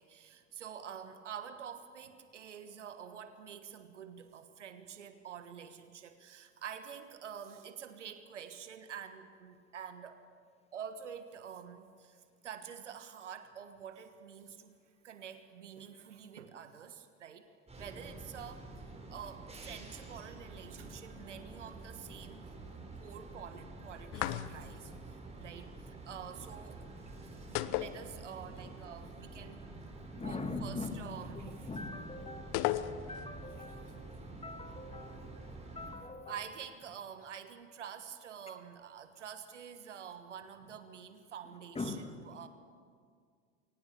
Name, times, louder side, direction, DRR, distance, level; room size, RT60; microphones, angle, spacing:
voice 1, 0.0-10.2 10.7-14.8 15.0-17.5 17.7-18.7 19.1-22.5 23.0-29.7 30.1-31.7 36.3-42.5, right 8 dB, 85° right, 10 dB, 1.4 m, -47 dB
sound 1, 17.7-35.9, right 2 dB, 20° right, 6.5 m, -48 dB
sound 2, 24.1-24.9 27.6-28.6 28.9-29.0 32.5-33.3, left 14 dB, 60° left, 1.0 m, -35 dB
voice 2, 30.1-36.4 41.7-42.1, left 3 dB, 15° left, 6 dB, 2.4 m, -43 dB
23.0 x 19.0 x 7.0 m, 2.1 s
hypercardioid pair, 75°, 35 cm